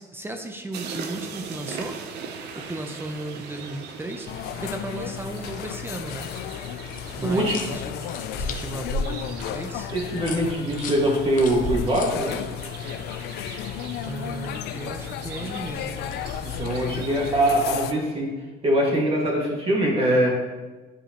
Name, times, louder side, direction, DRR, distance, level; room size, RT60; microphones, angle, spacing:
voice 1, 0.0-2.0 2.5-4.3 4.5-6.3 7.1-8.0 8.3-9.9 14.0-16.0, right 2 dB, 15° right, 5 dB, 0.6 m, -35 dB
sound 1, 0.7-17.7, right 6 dB, 90° right, 0.8 m, -41 dB
sound 2, 4.3-17.9, left 10 dB, 75° left, 0.4 m, -34 dB
sound 3, 6.9-12.8 15.4-16.9, left 2 dB, 50° left, 0.8 m, -35 dB
voice 2, 7.2-7.6 9.9-12.4 16.4-18.3 18.6-20.3, right 1 dB, 35° right, -2 dB, 2.0 m, -23 dB
10.0 x 5.0 x 3.0 m, 1.3 s
cardioid pair, 110°, 17 cm